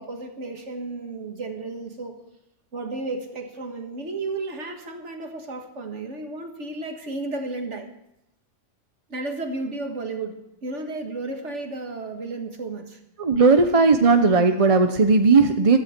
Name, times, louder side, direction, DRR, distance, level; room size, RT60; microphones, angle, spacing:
voice 1, 0.0-2.2 2.7-7.9 9.1-13.0, right 3 dB, 70° right, 4 dB, 2.1 m, -33 dB
voice 2, 13.2-15.8, right 4 dB, 35° right, 6 dB, 0.8 m, -17 dB
15.5 x 13.0 x 4.5 m, 0.83 s
omnidirectional pair, 1.3 m